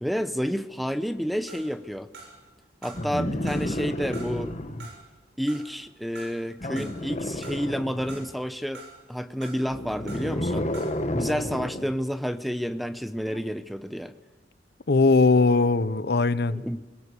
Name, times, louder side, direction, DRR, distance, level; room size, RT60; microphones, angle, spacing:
voice 1, 0.0-2.1 2.8-4.5 5.4-8.8 9.1-10.7 11.1-14.1 16.5-16.8, equal, ahead, 0.7 m, -30 dB
sound 1, 1.5-2.6 2.8-3.8 4.1-7.1 7.4-8.4 8.7-10.4 10.7-11.1, right 3 dB, 70° right, 6.8 m, -47 dB
sound 2, 2.9-4.9 6.6-8.3 9.6-11.9 13.3-13.4, left 1 dB, 40° left, 1.3 m, -31 dB
voice 2, 14.9-16.6, left 3 dB, 60° left, 0.7 m, -20 dB
21.5 x 18.0 x 8.3 m
head